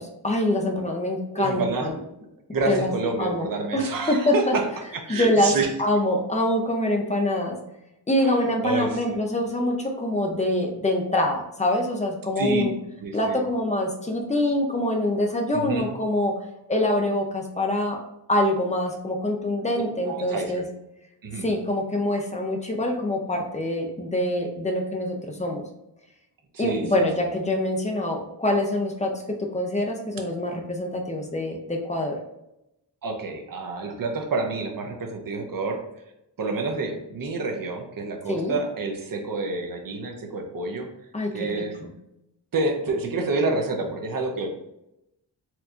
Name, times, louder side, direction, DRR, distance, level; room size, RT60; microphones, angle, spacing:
voice 1, 0.2-2.0 2.7-2.9 3.2-4.6 5.1-7.6 8.1-12.7 13.1-16.4 16.7-18.0 18.3-20.6 21.4-25.6 26.6-32.2 38.3-38.6 41.1-41.9, left 1 dB, 15° left, 1 dB, 0.4 m, -25 dB
voice 2, 1.3-1.9 2.5-4.6 4.9-5.7 8.2-9.0 12.4-12.6 13.0-13.4 15.5-15.9 20.1-20.6 21.2-21.5 26.5-27.1 33.0-35.8 36.4-40.9 41.3-41.7 42.5-44.5, right 3 dB, 50° right, 3 dB, 0.6 m, -28 dB
4.3 x 2.7 x 2.4 m, 0.87 s
wide cardioid pair, 145°, 43 cm